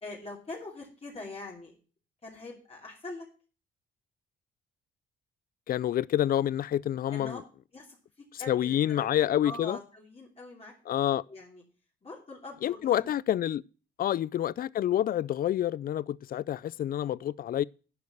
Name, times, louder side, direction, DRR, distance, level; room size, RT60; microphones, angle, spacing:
voice 1, 0.0-1.8 2.2-3.3 7.1-7.4 7.7-8.0 8.4-10.7 11.3-11.6 12.0-13.1, left 3 dB, 30° left, 2.9 m, -43 dB
voice 2, 5.7-7.4 8.5-9.8 10.9-11.2 12.6-13.6 14.0-17.6, left 11 dB, 45° left, 0.4 m, -28 dB
10.5 x 5.3 x 7.8 m
cardioid pair, 90°, 20 cm